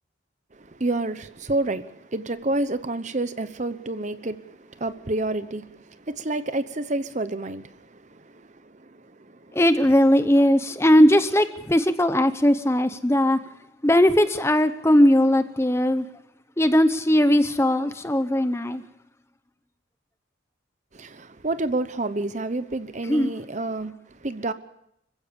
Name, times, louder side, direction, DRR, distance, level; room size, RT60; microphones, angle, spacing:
voice 1, 0.5-9.6 20.9-24.5, right 2 dB, 35° right, 0.9 m, -29 dB
voice 2, 9.5-13.4 13.8-16.1 16.6-18.8 23.1-23.3, equal, 15° left, 0.7 m, -19 dB
25.5 x 15.5 x 7.0 m
head